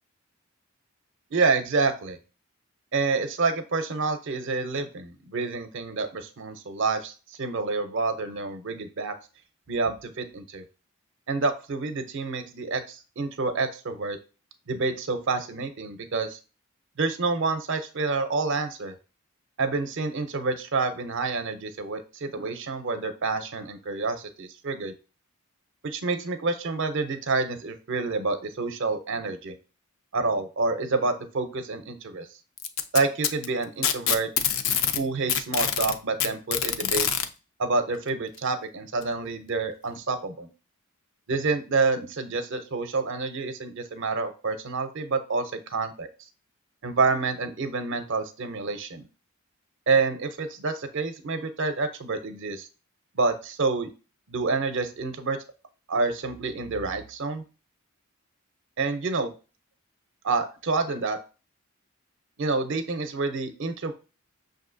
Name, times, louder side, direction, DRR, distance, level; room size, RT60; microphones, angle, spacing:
voice 1, 1.3-2.2 2.9-9.1 9.7-10.6 11.3-14.2 14.7-16.4 17.0-18.9 19.6-24.9 25.8-29.6 30.1-32.3 32.9-34.3 34.9-37.1 37.6-40.5 41.3-46.1 46.8-49.0 49.9-52.7 53.1-53.9 54.3-55.4 55.9-57.4 58.8-59.3 60.2-61.2 62.4-63.9, right 3 dB, 60° right, 9 dB, 0.5 m, -28 dB
Packing tape duct tape, 32.6-35.0 35.3-37.3 38.4-38.5 39.0-39.1 40.0-40.1, left 9 dB, 65° left, 0.4 m, -25 dB
6.1 x 2.6 x 2.5 m, 0.33 s
head